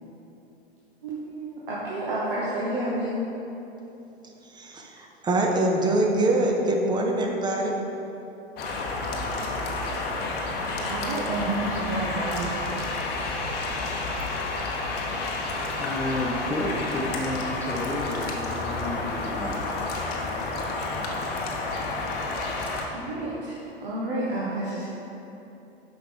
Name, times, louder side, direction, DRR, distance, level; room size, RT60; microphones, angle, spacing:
voice 1, 1.0-3.2 9.9-10.2 10.8-12.7 22.9-24.9, right 1 dB, 55° right, -7 dB, 1.4 m, -30 dB
voice 2, 4.5-7.7, right 2 dB, 15° right, 1 dB, 0.8 m, -24 dB
sound 1, 8.6-22.9, left 3 dB, 30° left, 1.0 m, -30 dB
voice 3, 15.8-19.7, left 1 dB, 5° left, -4 dB, 0.3 m, -31 dB
9.3 x 6.0 x 3.5 m, 3.0 s
figure-of-eight pair, 100°, 32 cm